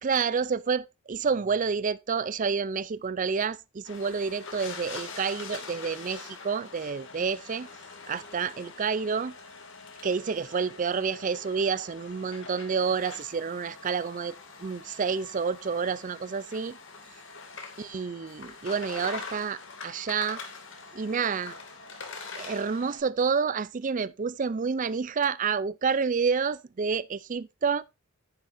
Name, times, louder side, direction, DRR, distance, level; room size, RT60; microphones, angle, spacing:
voice 1, 0.0-7.7 8.1-9.3 10.0-16.8 17.8-20.4 20.9-21.5 22.4-27.8, right 5 dB, 35° right, 0.4 m, -29 dB
sound 1, 3.8-23.0, left 4 dB, 55° left, 2.3 m, -44 dB
9.9 x 9.8 x 2.6 m
head